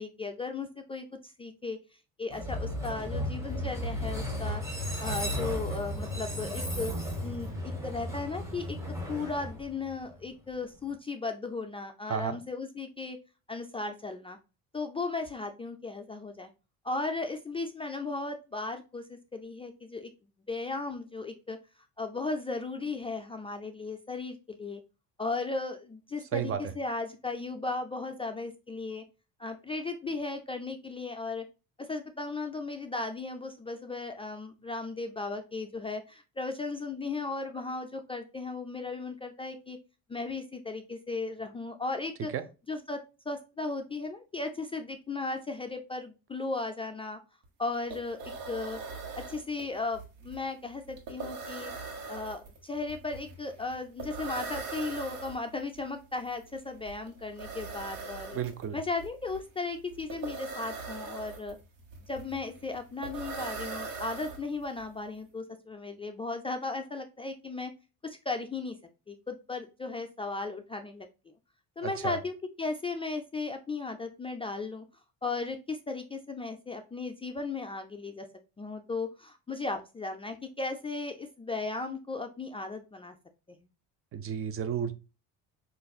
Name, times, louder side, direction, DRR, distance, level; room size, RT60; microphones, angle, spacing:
voice 1, 0.0-1.8 2.2-4.6 5.0-6.9 7.2-8.8 9.1-13.2 13.5-14.4 14.7-16.5 16.8-20.1 20.5-21.6 22.0-24.8 25.2-29.0 29.4-31.4 31.8-39.8 40.1-42.3 42.7-47.2 47.6-48.2 48.5-48.8 49.2-51.7 52.1-58.4 58.7-61.6 62.1-67.7 68.0-68.8 69.1-71.1 71.8-74.8 75.2-78.3 78.6-83.2, left 3 dB, 15° left, 0.3 m, -36 dB
Train, 2.3-10.3, equal, 10° right, 1.2 m, -34 dB
sound 1, 47.4-47.5 47.7-64.8, right 4 dB, 75° right, 1.3 m, -41 dB
voice 2, 58.3-58.8 71.8-72.2 84.1-84.9, right 8 dB, 40° right, 0.5 m, -32 dB
5.1 x 2.5 x 2.3 m
cardioid pair, 100°, 36 cm